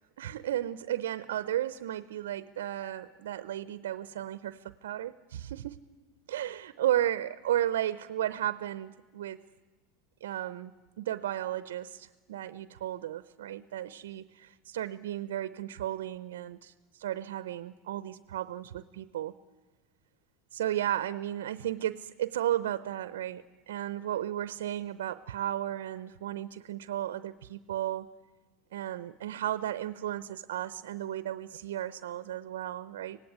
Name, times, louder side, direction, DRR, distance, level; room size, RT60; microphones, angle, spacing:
voice 1, 0.2-5.8 6.3-9.4 10.2-10.7 11.0-19.3 20.5-28.1 28.7-33.2, right 12 dB, 80° right, 15 dB, 0.7 m, -34 dB
25.5 x 18.0 x 9.7 m, 1.4 s
hypercardioid pair, 85°, 0 cm